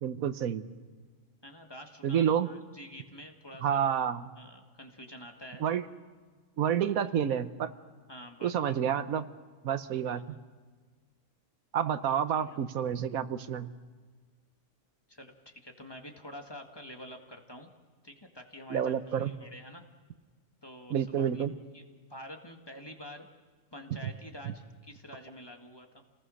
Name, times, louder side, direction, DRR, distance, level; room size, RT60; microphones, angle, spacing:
voice 1, 0.0-0.7 2.0-2.5 3.6-4.2 5.6-5.8 6.6-7.7 8.4-9.2 9.6-10.2 11.7-13.7 18.7-19.3 20.9-21.5, right 8 dB, 85° right, 12 dB, 1.3 m, -29 dB
voice 2, 1.4-3.8 4.4-5.7 8.1-8.8 10.1-10.4 12.3-12.6 15.1-17.7 18.0-19.8 20.6-21.5 21.7-21.8 22.1-23.3 23.7-25.9, left 1 dB, 15° left, 3 dB, 1.8 m, -48 dB
29.0 x 19.0 x 6.4 m, 1.5 s
omnidirectional pair, 1.4 m